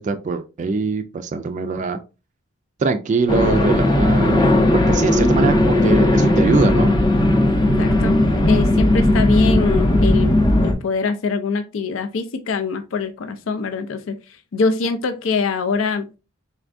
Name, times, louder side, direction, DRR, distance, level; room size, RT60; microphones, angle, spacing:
voice 1, 0.0-2.0 2.8-6.9, right 4 dB, 35° right, 9 dB, 0.3 m, -22 dB
sound 1, 3.3-10.7, left 1 dB, 20° left, 0.6 m, -16 dB
voice 2, 7.8-10.3 10.6-14.1 14.5-16.2, left 4 dB, 70° left, 8 dB, 0.4 m, -23 dB
4.2 x 3.4 x 2.5 m, 0.30 s
head